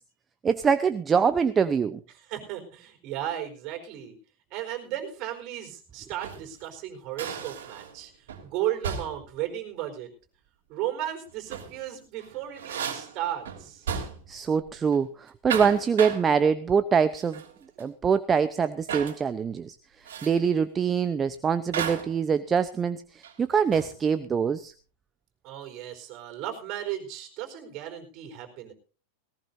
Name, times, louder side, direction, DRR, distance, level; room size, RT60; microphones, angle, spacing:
voice 1, 0.4-2.0 14.3-17.4 17.8-24.7, right 6 dB, 25° right, 12 dB, 0.8 m, -24 dB
voice 2, 2.3-4.1 4.5-8.1 8.4-10.1 10.7-13.9 25.4-28.7, right 12 dB, 45° right, 5 dB, 4.3 m, -35 dB
sound 1, 6.0-6.5 7.2-8.0 8.3-8.5 8.8-9.3 11.3-11.8 12.2-14.4 14.7-15.0 15.3-16.3 17.2-17.5 17.8-17.9 18.9-19.2 20.0-20.4 21.7-22.2 23.2-24.0, right 7 dB, 70° right, 3.1 m, -34 dB
18.5 x 18.0 x 2.7 m, 0.36 s
hypercardioid pair, 95°, 0 cm